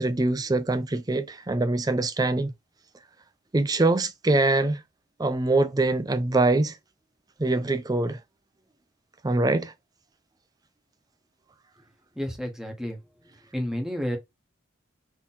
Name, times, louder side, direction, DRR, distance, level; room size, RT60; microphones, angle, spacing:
voice 1, 0.0-2.5 3.5-4.8 5.2-6.8 7.4-8.2 9.2-9.7, right 2 dB, 20° right, 0.5 m, -23 dB
voice 2, 12.1-13.0 13.5-14.2, equal, 5° right, 1.1 m, -30 dB
3.8 x 2.9 x 4.2 m
head